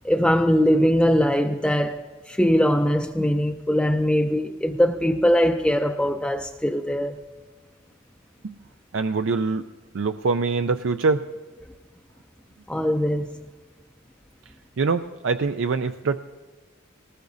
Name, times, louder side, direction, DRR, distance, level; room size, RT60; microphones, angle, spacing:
voice 1, 0.0-7.2 12.7-13.4, equal, 5° left, 0.4 m, -21 dB
voice 2, 8.9-9.7 9.9-11.2 14.8-16.2, right 4 dB, 70° right, 0.4 m, -24 dB
19.5 x 19.0 x 2.7 m
head